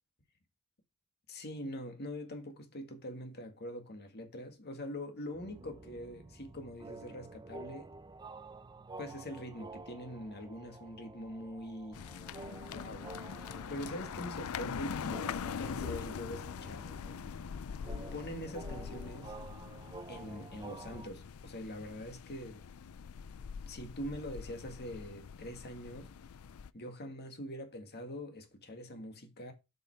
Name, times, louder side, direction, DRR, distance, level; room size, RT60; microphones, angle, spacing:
voice 1, 1.3-7.9 9.0-12.0 12.7-13.1 13.7-16.9 18.1-19.3 20.1-22.7 23.6-26.1 26.7-29.5, equal, 45° left, 1.8 m, -43 dB
sound 1, 5.3-21.1, right 3 dB, 20° right, 0.5 m, -50 dB
sound 2, 11.9-26.7, left 7 dB, 70° left, 0.4 m, -43 dB
8.0 x 5.4 x 4.6 m
head